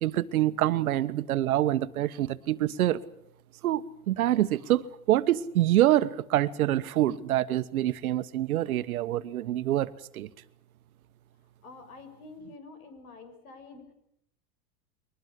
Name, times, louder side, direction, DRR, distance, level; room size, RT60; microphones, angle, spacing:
voice 1, 0.0-3.0 3.6-10.3, right 13 dB, 90° right, 14 dB, 1.3 m, -26 dB
voice 2, 11.6-13.9, left 3 dB, 80° left, 9 dB, 6.5 m, -47 dB
22.5 x 20.5 x 8.3 m, 0.75 s
supercardioid pair, 125°, 42 cm